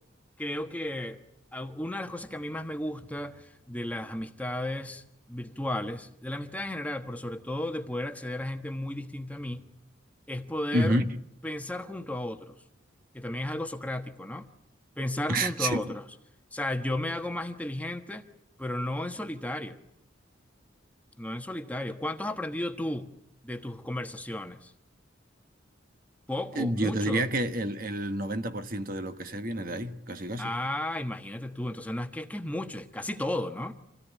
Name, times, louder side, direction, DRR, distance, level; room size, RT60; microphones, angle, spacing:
voice 1, 0.4-1.2 1.5-9.6 10.3-11.0 11.4-12.6 13.1-14.5 15.0-16.0 16.5-18.3 18.6-19.8 21.2-23.1 23.4-24.7 26.3-27.2 30.4-33.8, left 1 dB, 10° left, 1.1 m, -34 dB
voice 2, 10.7-11.1 15.3-15.9 26.5-30.5, right 1 dB, 45° right, 1.2 m, -29 dB
26.5 x 17.0 x 10.0 m
head